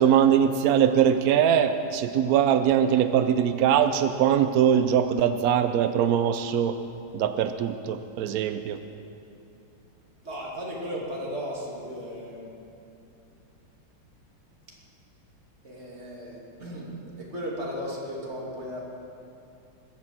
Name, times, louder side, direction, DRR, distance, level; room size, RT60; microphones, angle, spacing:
voice 1, 0.0-6.7 7.1-8.8, right 9 dB, 80° right, 9 dB, 0.8 m, -22 dB
voice 2, 10.2-12.5 15.6-18.8, equal, 30° right, -3 dB, 2.9 m, -35 dB
21.0 x 8.4 x 7.4 m, 2.8 s
omnidirectional pair, 2.3 m